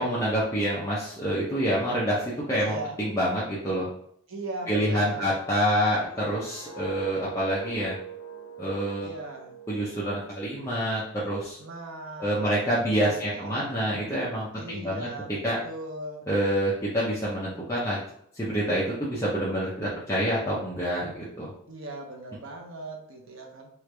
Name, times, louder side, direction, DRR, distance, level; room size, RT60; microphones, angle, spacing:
voice 1, 0.0-3.9 4.7-7.9 8.6-9.1 9.7-11.6 12.2-15.6 16.3-18.0 18.3-21.5, equal, 15° left, -8 dB, 0.6 m, -27 dB
voice 2, 2.6-2.9 4.3-5.3 9.0-9.6 11.6-13.7 14.5-16.3 21.7-23.7, right 2 dB, 70° right, 1 dB, 0.8 m, -39 dB
sound 1, 5.8-10.8 11.2-11.5, right 6 dB, 90° left, 0.4 m, -42 dB
3.1 x 2.4 x 3.2 m, 0.68 s
head